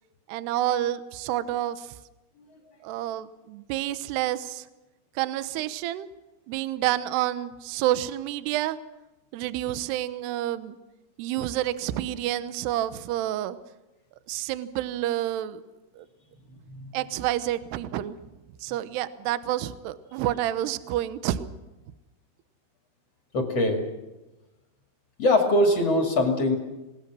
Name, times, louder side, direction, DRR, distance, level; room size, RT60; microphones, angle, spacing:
voice 1, 0.3-2.0 2.8-4.7 5.2-6.1 6.5-8.8 9.3-10.8 11.2-13.6 14.3-15.6 16.0-16.1 16.9-18.2 18.6-21.5, right 13 dB, 80° right, 12 dB, 2.4 m, -29 dB
voice 2, 23.3-23.8 25.2-26.6, left 1 dB, 40° left, 2 dB, 2.5 m, -22 dB
28.0 x 20.0 x 6.2 m, 1.0 s
omnidirectional pair, 5.9 m